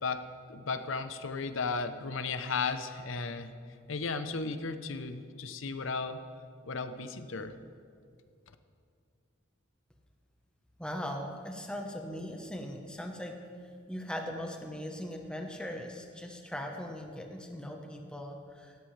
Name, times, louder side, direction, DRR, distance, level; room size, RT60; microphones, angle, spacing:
voice 1, 0.0-3.5 3.9-6.2 6.7-7.5, left 4 dB, 75° left, 10 dB, 0.7 m, -35 dB
voice 2, 10.8-13.3 13.9-18.8, equal, 5° left, 2 dB, 1.0 m, -39 dB
17.5 x 13.5 x 3.3 m, 2.3 s
head